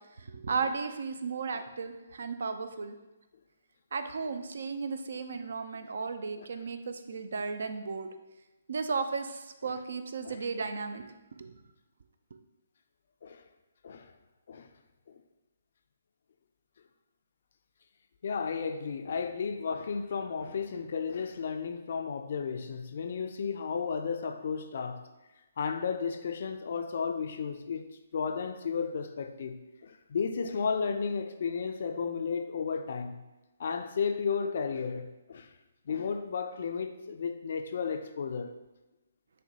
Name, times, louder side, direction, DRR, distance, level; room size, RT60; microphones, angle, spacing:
voice 1, 0.2-3.0 3.9-8.1 8.7-11.1 11.3-11.5, right 5 dB, 60° right, 0.3 m, -35 dB
voice 2, 18.2-25.1 25.6-27.9 28.1-33.2 33.6-35.5 35.9-38.5, left 5 dB, 50° left, 0.3 m, -33 dB
6.4 x 2.2 x 2.7 m
figure-of-eight pair, 135°, 0 cm